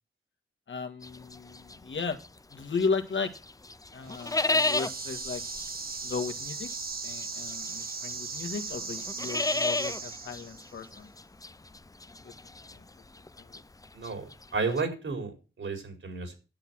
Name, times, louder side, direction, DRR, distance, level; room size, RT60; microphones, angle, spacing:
voice 1, 0.7-2.2 2.5-3.3 3.9-5.4 6.0-6.7 7.0-11.1 12.2-12.8 13.4-13.6, left 4 dB, 65° left, 5 dB, 1.8 m, -35 dB
sound 1, 1.0-3.0 3.3-14.8, left 2 dB, 15° left, 0.5 m, -33 dB
sound 2, 4.1-10.8, right 4 dB, 45° right, 1.5 m, -38 dB
voice 2, 13.9-14.2 14.5-16.4, right 4 dB, 70° right, 5 dB, 4.5 m, -32 dB
10.5 x 8.3 x 6.1 m, 0.33 s
wide cardioid pair, 90°, 21 cm